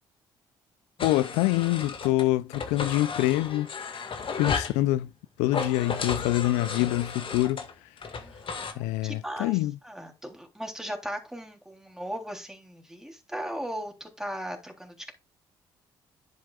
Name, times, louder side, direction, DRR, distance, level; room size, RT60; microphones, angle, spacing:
voice 1, 1.0-3.7 4.4-5.1 5.4-7.6 8.8-9.8, left 17 dB, 80° left, 0.4 m, -25 dB
sound 1, 1.0-2.2 2.5-4.8 5.4-8.7, left 5 dB, 50° left, 1.9 m, -34 dB
voice 2, 8.2-9.6 9.8-15.1, equal, 5° right, 3.4 m, -37 dB
10.5 x 7.8 x 2.4 m
hypercardioid pair, 55°, 12 cm